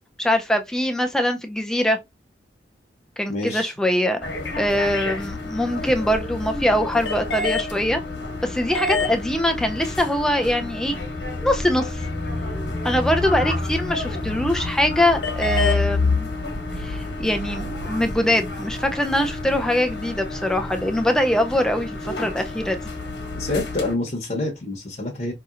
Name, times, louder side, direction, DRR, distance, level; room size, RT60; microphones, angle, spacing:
voice 1, 0.2-2.0 3.2-4.2 4.6-8.0 8.4-11.0 11.4-12.0 12.8-16.3 16.8-22.8, left 1 dB, 5° left, 0.5 m, -23 dB
voice 2, 3.3-3.7 23.4-25.3, left 2 dB, 45° left, 0.9 m, -27 dB
sound 1, 4.2-23.9, left 3 dB, 75° left, 1.2 m, -28 dB
5.1 x 2.9 x 2.5 m
head